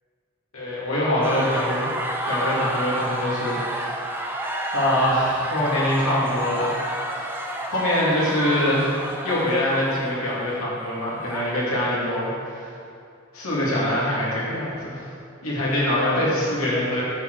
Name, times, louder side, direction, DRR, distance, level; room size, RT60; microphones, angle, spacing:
voice 1, 0.5-1.9 2.2-4.1 4.7-6.8 7.2-7.4 7.7-9.0 9.2-12.7 13.3-15.1 15.4-17.0, left 1 dB, 80° left, -7 dB, 2.5 m, -24 dB
sound 1, 1.2-11.9, right 1 dB, 10° right, 0.6 m, -30 dB
11.5 x 6.7 x 4.8 m, 2.5 s
head